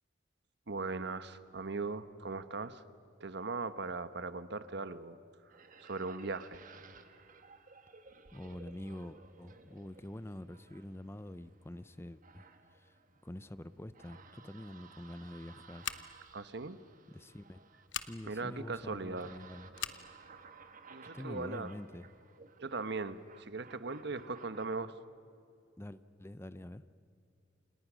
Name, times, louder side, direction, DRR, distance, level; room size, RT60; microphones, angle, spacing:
voice 1, 0.7-2.8 3.2-5.2 5.5-6.6 16.3-16.8 18.2-19.3 20.9-21.7 22.6-24.9, right 3 dB, 65° right, 12 dB, 1.1 m, -39 dB
sound 1, 5.5-24.8, right 5 dB, 45° right, 1.6 m, -58 dB
voice 2, 8.3-13.0 13.2-15.9 17.1-17.6 18.0-19.7 21.0-22.1 25.8-26.8, left 1 dB, 15° left, 14 dB, 0.6 m, -46 dB
Scissors, 15.8-16.3 17.9-18.1 19.7-20.0, left 10 dB, 75° left, 1.1 m, -40 dB
29.0 x 28.5 x 6.3 m, 2.5 s
head